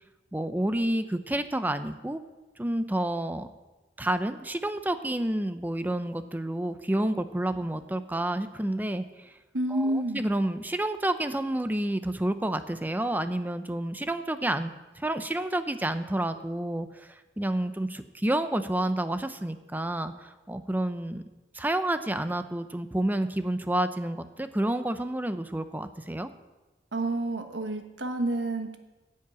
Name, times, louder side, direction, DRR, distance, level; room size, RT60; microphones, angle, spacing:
voice 1, 0.3-2.2 2.6-3.5 4.0-9.4 9.7-21.2 21.5-26.3, right 1 dB, 10° right, 10 dB, 0.6 m, -29 dB
voice 2, 9.5-10.2 26.9-28.8, right 1 dB, 75° right, 6 dB, 1.3 m, -29 dB
10.5 x 7.6 x 8.6 m, 1.1 s
head